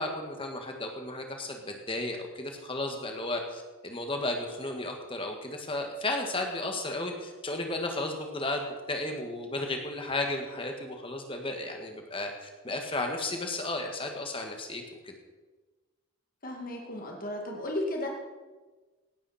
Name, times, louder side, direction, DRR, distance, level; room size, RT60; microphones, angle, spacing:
voice 1, 0.0-15.1, left 2 dB, 25° left, 3 dB, 1.8 m, -34 dB
voice 2, 16.4-18.1, left 1 dB, 40° left, 0 dB, 2.3 m, -34 dB
17.5 x 12.0 x 4.4 m, 1.3 s
head